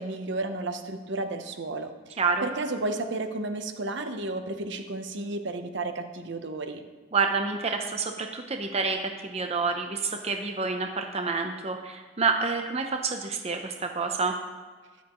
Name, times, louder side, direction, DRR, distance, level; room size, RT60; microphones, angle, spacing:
voice 1, 0.0-6.8, right 2 dB, 60° right, 7 dB, 0.9 m, -33 dB
voice 2, 2.2-2.5 7.1-14.3, right 4 dB, 30° right, 4 dB, 0.7 m, -28 dB
13.5 x 11.0 x 3.1 m, 1.5 s
head